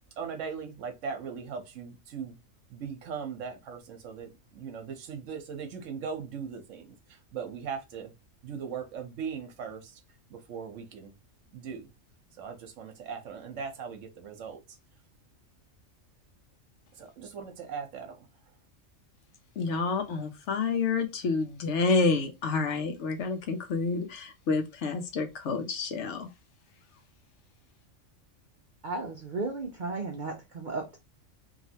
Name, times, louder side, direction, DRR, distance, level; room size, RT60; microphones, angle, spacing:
voice 1, 0.2-2.4 2.7-6.9 7.3-8.1 8.4-10.0 10.3-11.1 11.5-11.9 12.4-14.6 17.0-18.2, right 6 dB, 70° right, 1.0 m, -39 dB
voice 2, 19.6-26.3, left 4 dB, 65° left, 0.9 m, -29 dB
voice 3, 28.8-31.0, right 3 dB, 55° right, 0.5 m, -34 dB
3.1 x 2.7 x 2.7 m
omnidirectional pair, 1.4 m